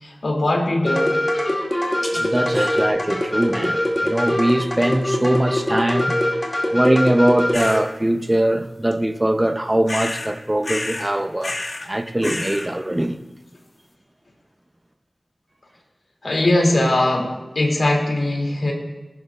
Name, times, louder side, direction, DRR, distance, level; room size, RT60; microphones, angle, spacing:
voice 1, 0.0-1.2 2.5-2.6 16.2-18.7, left 1 dB, 75° left, 2.7 m, -20 dB
sound 1, 0.9-7.8, left 1 dB, 25° left, 2.2 m, -22 dB
voice 2, 2.1-6.2 6.7-13.2, right 1 dB, 20° right, 0.7 m, -21 dB
sound 2, 7.5-7.8 9.9-10.3 10.6-11.1 11.4-11.9 12.2-12.7, left 2 dB, 50° left, 1.1 m, -29 dB
20.0 x 12.0 x 2.5 m
wide cardioid pair, 70°, 0 cm